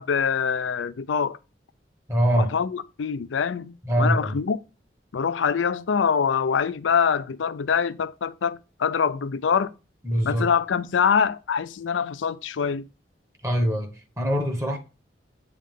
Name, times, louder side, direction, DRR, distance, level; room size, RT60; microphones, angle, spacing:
voice 1, 0.0-1.4 2.3-4.6 5.1-9.7 10.2-12.9, left 6 dB, 90° left, 0.4 m, -24 dB
voice 2, 2.1-2.5 3.8-4.4 10.0-10.5 13.4-13.9 14.2-14.8, equal, 15° right, 1.0 m, -23 dB
8.5 x 3.6 x 3.6 m
head